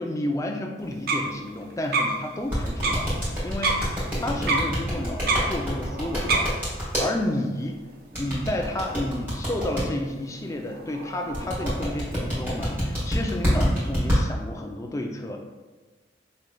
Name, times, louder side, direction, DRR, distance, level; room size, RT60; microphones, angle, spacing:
voice 1, 0.0-3.8 4.2-6.5 6.8-7.8 8.2-15.4, left 1 dB, 15° left, 2 dB, 0.3 m, -31 dB
sound 1, 0.8-13.9, right 3 dB, 50° right, 0.5 m, -32 dB
sound 2, 2.5-7.0 8.1-9.8 11.3-14.2, equal, 10° right, 1.4 m, -25 dB
5.3 x 3.1 x 2.2 m, 1.3 s
head